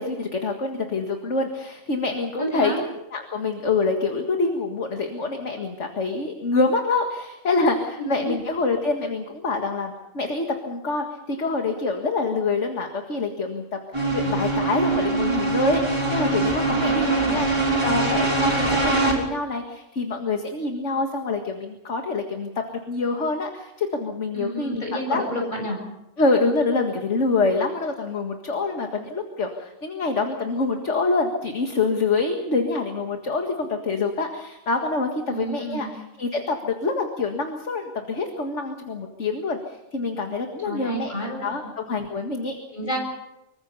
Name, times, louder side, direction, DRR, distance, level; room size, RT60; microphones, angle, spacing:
voice 1, 0.0-13.6 13.9-22.5 22.9-24.8 25.1-25.2 26.2-41.1 41.4-42.6, left 3 dB, 60° left, 3 dB, 2.2 m, -26 dB
voice 2, 2.4-2.8 8.0-8.3 16.6-17.4 24.3-25.8 35.3-35.9 40.6-41.4 42.7-43.0, right 1 dB, 35° left, 0 dB, 7.9 m, -30 dB
sound 1, 13.9-19.1, right 3 dB, 20° right, 5.9 m, -23 dB
25.5 x 23.5 x 5.6 m, 0.92 s
omnidirectional pair, 1.4 m